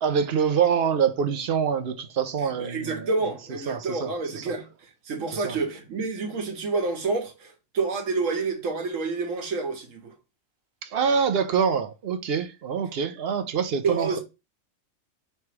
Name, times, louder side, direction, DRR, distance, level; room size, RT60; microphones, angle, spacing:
voice 1, 0.0-3.1 3.7-4.4 5.3-5.6 10.8-14.2, right 7 dB, 60° right, 0.7 m, -25 dB
voice 2, 2.4-4.7 5.1-10.1 13.8-14.2, right 3 dB, 85° right, 1.4 m, -28 dB
3.3 x 2.9 x 4.6 m
omnidirectional pair, 1.3 m